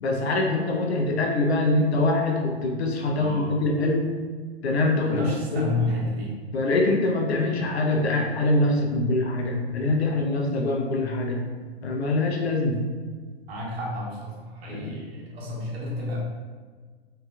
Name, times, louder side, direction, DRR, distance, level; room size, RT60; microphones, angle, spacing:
voice 1, 0.0-4.1 4.6-5.3 5.5-5.7 6.5-11.4 11.8-12.8 14.7-15.0, left 2 dB, 90° left, 1 dB, 0.7 m, -24 dB
voice 2, 3.1-3.6 5.0-6.3 13.5-16.2, left 1 dB, 75° right, -4 dB, 1.2 m, -31 dB
3.2 x 2.7 x 2.3 m, 1.5 s
hypercardioid pair, 135°, 31 cm